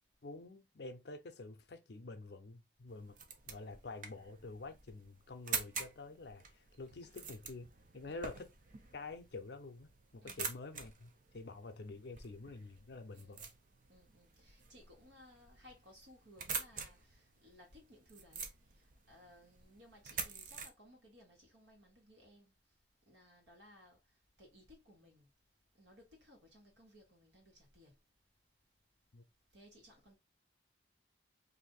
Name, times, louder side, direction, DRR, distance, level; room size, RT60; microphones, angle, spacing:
voice 1, 0.2-3.2 3.5-7.7 7.9-8.5 8.9-13.5 29.1-29.2, left 3 dB, 60° left, 0.6 m, -48 dB
sound 1, 2.9-20.7, right 5 dB, 45° right, 0.6 m, -47 dB
voice 2, 8.0-8.3 10.2-10.6 13.1-13.5 13.9-18.5 18.8-22.5 23.1-24.0 24.4-25.3 25.8-27.9 29.5-30.2, left 1 dB, 75° right, 1.6 m, -61 dB
2.7 x 2.6 x 3.8 m
head